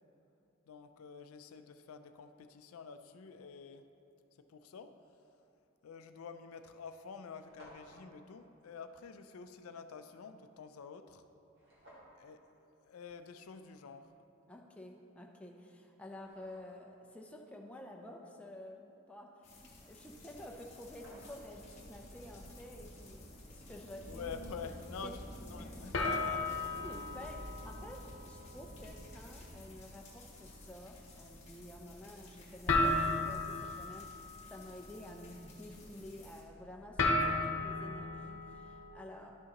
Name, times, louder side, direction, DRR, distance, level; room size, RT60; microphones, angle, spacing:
voice 1, 0.7-3.8 4.5-4.9 5.8-11.2 12.1-14.1 24.1-26.6, left 5 dB, 85° left, 8 dB, 0.4 m, -48 dB
sound 1, 5.7-5.9 6.6-6.7 6.9-7.0 7.2-8.1 11.5-12.2 15.1-15.2 15.8-16.9 20.3-20.4 20.6-21.6, right 1 dB, 55° right, 1.8 m, -59 dB
voice 2, 14.5-24.3 25.0-25.1 26.8-39.4, left 1 dB, 5° left, 1 dB, 0.5 m, -50 dB
sound 2, 19.4-36.4, left 1 dB, 30° left, 1.3 m, -52 dB
sound 3, 20.7-22.2 22.6-23.0 23.5-23.6 25.9-38.9, left 2 dB, 60° left, 1.0 m, -37 dB
11.5 x 6.3 x 2.9 m, 2.7 s
head